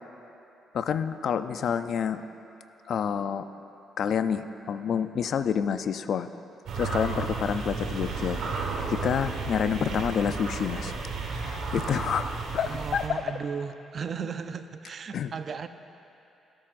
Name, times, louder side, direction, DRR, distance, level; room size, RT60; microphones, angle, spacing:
voice 1, 0.7-2.2 2.9-3.5 4.0-6.3 6.8-8.4 8.9-10.9 11.4-13.2 15.1-15.3, left 7 dB, 65° left, 11 dB, 0.4 m, -28 dB
sound 1, 6.7-13.1, right 4 dB, 75° right, 1.4 m, -33 dB
voice 2, 12.6-15.7, right 6 dB, 50° right, 10 dB, 0.5 m, -35 dB
25.0 x 8.6 x 2.6 m, 2.9 s
cardioid pair, 90°, 0 cm